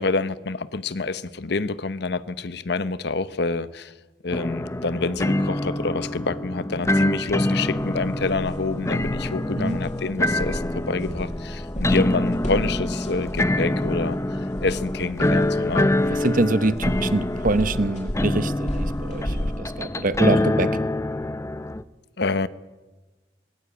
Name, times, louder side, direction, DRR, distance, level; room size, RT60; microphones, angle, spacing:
voice 1, 0.0-3.9 4.2-14.2 14.6-15.9 22.2-22.5, left 3 dB, 65° left, 14 dB, 0.9 m, -27 dB
sound 1, 4.3-21.8, left 1 dB, 15° left, 0.6 m, -25 dB
sound 2, 7.8-19.6, equal, 40° left, 5.4 m, -34 dB
voice 2, 16.2-20.7, right 2 dB, 50° right, 14 dB, 0.9 m, -24 dB
20.5 x 17.0 x 8.5 m, 1.2 s
head